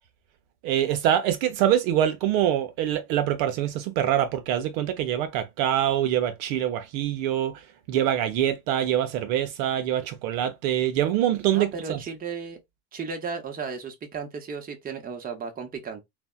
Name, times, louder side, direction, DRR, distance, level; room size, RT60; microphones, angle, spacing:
voice 1, 0.6-12.0, right 11 dB, 60° right, 0.7 m, -25 dB
voice 2, 11.5-12.6 12.9-16.0, right 5 dB, 20° right, 0.8 m, -34 dB
3.3 x 2.1 x 2.3 m
hypercardioid pair, 95°, 47 cm